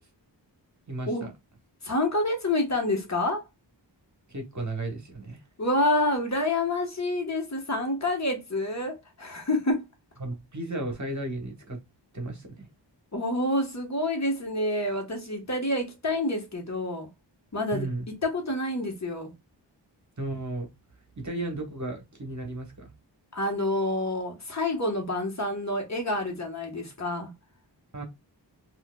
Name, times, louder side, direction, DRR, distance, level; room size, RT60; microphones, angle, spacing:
voice 1, 0.9-1.3 4.3-5.4 10.2-11.8 12.1-12.7 17.7-18.1 20.2-20.7 21.2-22.9 27.9-28.0, right 2 dB, 40° right, 1.1 m, -34 dB
voice 2, 1.8-3.4 5.6-9.9 13.1-17.1 17.5-17.9 18.2-19.3 23.3-27.3, left 1 dB, 40° left, 1.2 m, -28 dB
4.3 x 2.5 x 2.2 m
wide cardioid pair, 75°, 44 cm